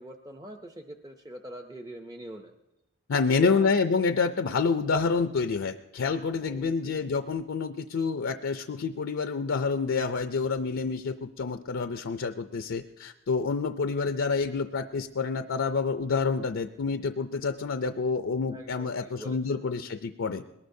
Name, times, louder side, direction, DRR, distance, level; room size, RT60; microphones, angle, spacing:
voice 1, 0.0-2.5 3.4-3.7 6.4-6.9 18.5-19.6, right 1 dB, 15° right, 4 dB, 0.5 m, -43 dB
voice 2, 3.1-20.4, left 4 dB, 60° left, 8 dB, 0.4 m, -28 dB
21.5 x 19.0 x 2.7 m, 0.96 s
head